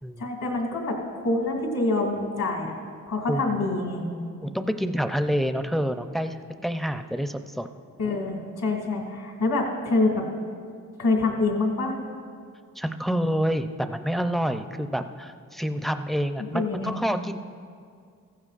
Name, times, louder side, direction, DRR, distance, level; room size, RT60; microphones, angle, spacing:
voice 1, 0.2-2.7 3.1-4.0 8.0-10.3 11.0-11.9 16.5-17.0, left 2 dB, 70° left, 0 dB, 2.3 m, -26 dB
voice 2, 3.3-3.7 4.4-6.4 6.6-7.7 12.8-17.4, equal, ahead, 8 dB, 0.5 m, -27 dB
15.5 x 15.0 x 2.5 m, 2.2 s
cardioid pair, 75°, 33 cm